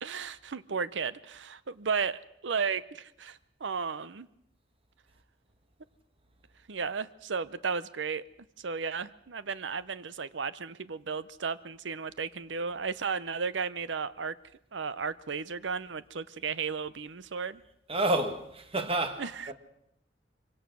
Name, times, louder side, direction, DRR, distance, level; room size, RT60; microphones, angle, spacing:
voice 1, 0.0-4.3 6.7-8.2 8.6-14.3 14.7-17.6 19.2-19.5, right 5 dB, 85° right, 0.7 m, -34 dB
voice 2, 17.9-19.5, right 2 dB, 30° right, 1.8 m, -29 dB
24.0 x 17.5 x 6.3 m
head